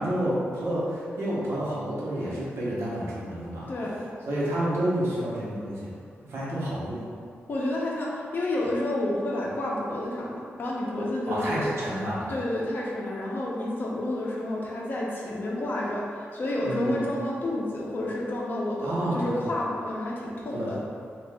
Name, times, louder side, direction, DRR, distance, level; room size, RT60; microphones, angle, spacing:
voice 1, 0.0-3.7 4.3-5.9 6.2-7.1 11.3-12.3 16.6-17.0 18.8-19.4 20.5-20.7, right 1 dB, 75° right, -8 dB, 0.9 m, -29 dB
voice 2, 3.7-4.1 7.5-11.7 12.3-20.8, left 1 dB, 45° left, -4 dB, 0.6 m, -30 dB
2.7 x 2.4 x 3.3 m, 2.3 s
wide cardioid pair, 145°, 5 cm